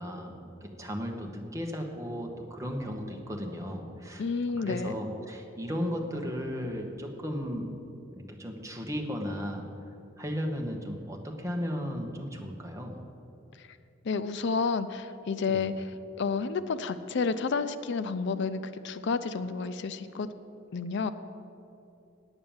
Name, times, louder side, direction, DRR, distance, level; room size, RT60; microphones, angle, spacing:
voice 1, 0.0-4.2 4.6-7.7 8.1-9.7 10.2-13.0 15.5-15.6, equal, 15° right, 1 dB, 1.1 m, -35 dB
voice 2, 4.2-4.9 14.0-15.7 16.2-20.3 20.7-21.1, left 5 dB, 60° left, 12 dB, 0.5 m, -30 dB
8.9 x 8.7 x 7.1 m, 2.8 s
head